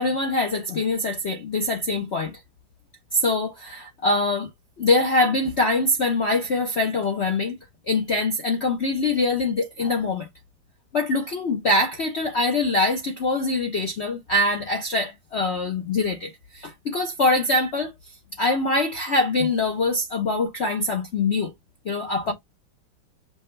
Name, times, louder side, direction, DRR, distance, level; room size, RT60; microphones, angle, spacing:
voice 1, 0.0-2.3 3.1-4.5 4.8-7.6 7.9-10.3 10.9-17.9 18.4-21.5 21.8-22.3, left 2 dB, 65° left, 0.6 m, -23 dB
5.9 x 2.3 x 3.2 m
omnidirectional pair, 2.3 m